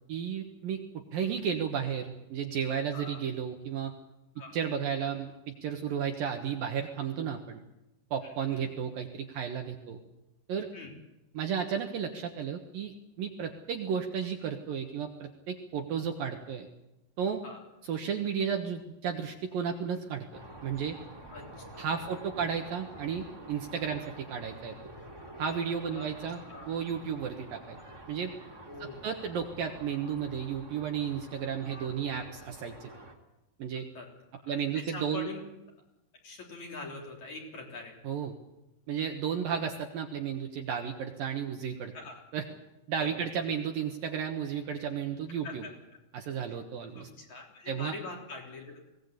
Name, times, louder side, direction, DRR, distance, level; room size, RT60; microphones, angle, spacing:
voice 1, 0.1-0.8 1.1-3.9 4.5-7.6 8.1-10.0 10.5-10.7 11.4-16.7 17.2-17.4 17.9-21.0 21.8-24.8 25.4-26.4 26.7-27.8 28.1-28.3 29.0-32.9 33.6-33.8 34.5-35.3 38.0-38.4 38.9-41.9 42.3-42.4 42.9-45.6 46.1-47.1 47.7-47.9, right 7 dB, 65° right, 4 dB, 2.7 m, -33 dB
voice 2, 2.9-3.3 4.4-4.6 8.2-8.7 10.7-10.9 17.4-17.6 21.3-21.9 22.3-22.5 25.9-26.1 26.4-26.8 28.6-29.1 33.9-34.1 34.4-35.4 36.2-38.0 39.5-39.7 41.9-42.2 43.0-43.3 45.4-45.7 46.5-46.6 46.9-48.8, left 3 dB, 45° left, 0 dB, 4.7 m, -44 dB
sound 1, 20.3-33.1, right 1 dB, 5° right, 2.1 m, -48 dB
22.0 x 18.0 x 8.4 m, 0.95 s
omnidirectional pair, 5.2 m